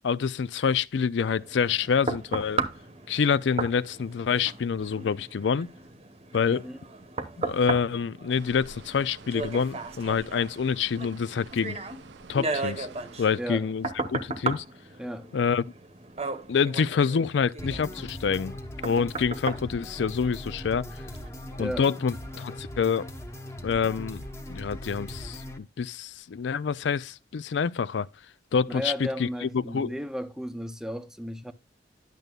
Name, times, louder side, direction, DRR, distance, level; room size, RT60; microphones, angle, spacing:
voice 1, 0.0-2.6 3.1-5.7 6.3-6.6 7.4-11.8 12.3-12.9 13.2-14.6 15.3-15.6 16.5-18.5 18.8-20.8 21.6-23.1 23.6-24.2 24.5-28.1 28.5-29.3 29.6-29.9, left 6 dB, 85° left, 0.4 m, -27 dB
sound 1, 1.4-20.7 21.2-21.3, right 3 dB, 35° right, 0.9 m, -36 dB
sound 2, 8.3-13.4, right 4 dB, 85° right, 0.6 m, -49 dB
voice 2, 13.4-13.7 15.0-15.3 21.6-21.9 28.7-31.5, equal, 5° right, 0.7 m, -34 dB
sound 3, 17.6-25.6, left 1 dB, 15° left, 1.0 m, -40 dB
10.5 x 6.6 x 2.3 m
head